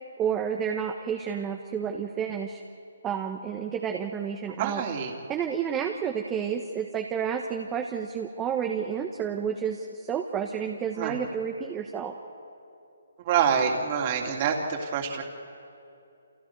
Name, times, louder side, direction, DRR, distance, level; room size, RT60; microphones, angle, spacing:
voice 1, 0.2-2.6 3.0-4.8 5.3-12.1, right 7 dB, 15° right, 3 dB, 1.3 m, -30 dB
voice 2, 4.6-5.1 11.0-11.2 13.2-15.2, right 7 dB, 35° right, 2 dB, 3.1 m, -26 dB
29.0 x 28.5 x 4.8 m, 2.7 s
hypercardioid pair, 150°, 0 cm